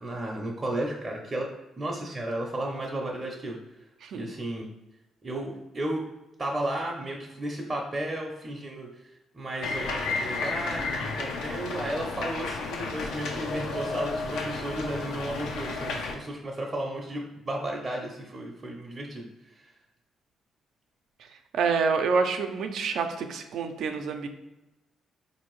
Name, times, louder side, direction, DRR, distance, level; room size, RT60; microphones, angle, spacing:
voice 1, 0.0-1.5 1.8-3.6 4.1-4.7 5.2-6.0 6.4-19.7, right 1 dB, 25° right, -1 dB, 0.6 m, -34 dB
sound 1, 9.6-16.1, left 3 dB, 85° left, 0.6 m, -32 dB
voice 2, 21.2-24.3, right 5 dB, 75° right, 6 dB, 0.4 m, -28 dB
4.2 x 2.6 x 3.0 m, 0.97 s
cardioid pair, 90°, 0 cm